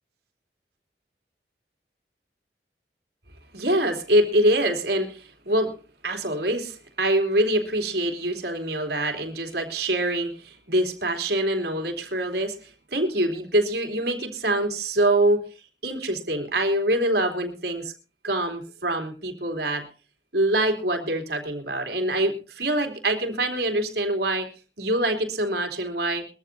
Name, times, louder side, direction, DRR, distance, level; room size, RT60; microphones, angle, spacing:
voice 1, 3.5-5.8 6.0-15.4 15.8-17.9 18.2-19.9 20.3-24.5 24.8-26.3, right 1 dB, 70° right, 5 dB, 3.4 m, -25 dB
22.5 x 14.0 x 2.8 m, 0.34 s
head